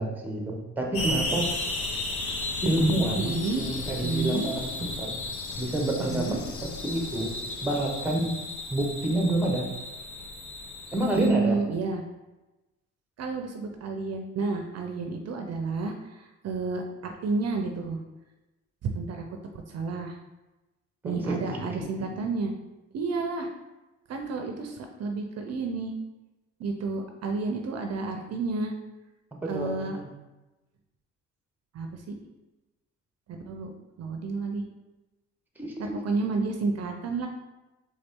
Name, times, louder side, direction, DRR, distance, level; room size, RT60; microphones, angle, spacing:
voice 1, 0.0-1.5 2.6-5.2 5.6-6.4 6.8-7.3 7.6-8.4 8.7-9.7 10.9-11.6 21.0-21.7 21.9-22.1 29.4-30.1 35.6-36.0, right 1 dB, 5° right, 1 dB, 0.9 m, -28 dB
sound 1, 0.9-11.3, left 2 dB, 75° left, 0.8 m, -34 dB
voice 2, 3.2-3.7 4.0-4.5 6.0-6.4 11.1-12.0 13.2-18.0 18.8-19.2 19.7-20.2 21.0-22.5 22.9-23.5 24.1-25.9 26.6-28.7 29.5-30.0 31.7-32.2 33.3-33.7 34.0-34.6 35.8-37.3, right 3 dB, 55° right, 4 dB, 0.6 m, -30 dB
3.9 x 3.7 x 3.6 m, 1.1 s
cardioid pair, 90°, 30 cm